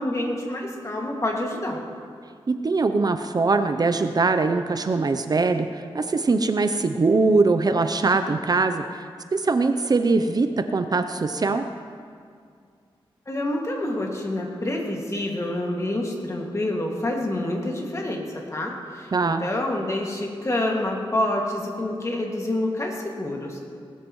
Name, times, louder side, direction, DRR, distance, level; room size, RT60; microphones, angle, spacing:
voice 1, 0.0-1.8 13.3-23.6, left 1 dB, 30° left, -1 dB, 2.1 m, -27 dB
voice 2, 2.5-9.0 9.3-11.7 19.1-19.5, right 3 dB, 40° right, 8 dB, 0.6 m, -22 dB
19.0 x 13.0 x 3.1 m, 2.2 s
wide cardioid pair, 100°, 10 cm